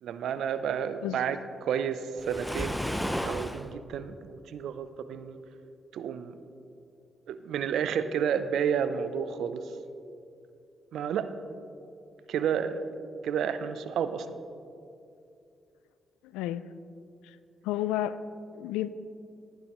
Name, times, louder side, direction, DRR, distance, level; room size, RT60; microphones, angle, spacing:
voice 1, 0.0-5.4 5.9-6.4 7.3-9.7 10.9-11.3 12.3-12.8 13.2-14.4, right 7 dB, 75° right, 11 dB, 0.5 m, -31 dB
Waves surf, 2.2-3.7, equal, 5° left, 0.7 m, -32 dB
voice 2, 16.2-16.7 17.2-17.4 17.6-18.2 18.5-18.9, left 13 dB, 90° left, 15 dB, 0.3 m, -31 dB
15.0 x 11.0 x 3.1 m, 2.5 s
supercardioid pair, 55°, 0 cm